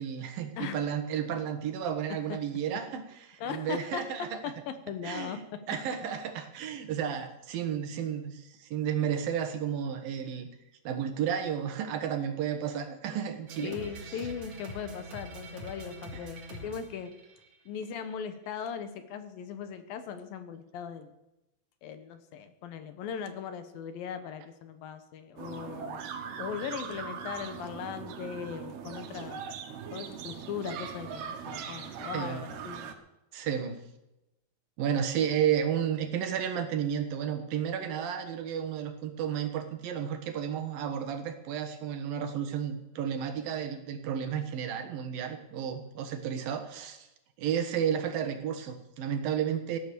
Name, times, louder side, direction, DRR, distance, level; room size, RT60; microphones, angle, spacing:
voice 1, 0.0-3.0 3.3-4.3 5.0-5.4 5.7-10.5 10.8-13.7 32.1-32.4 33.3-33.8 34.8-47.1 47.4-49.8, right 8 dB, 70° right, 7 dB, 3.0 m, -32 dB
voice 2, 3.4-4.1 4.4-5.6 13.6-17.1 17.7-21.1 21.8-26.0 26.4-29.5 29.9-33.0, left 7 dB, 70° left, 9 dB, 2.8 m, -39 dB
sound 1, 13.5-17.9, right 1 dB, 50° right, 3.8 m, -44 dB
sound 2, 25.4-32.9, right 7 dB, 90° right, 3.3 m, -40 dB
17.0 x 11.0 x 6.9 m, 0.91 s
omnidirectional pair, 4.4 m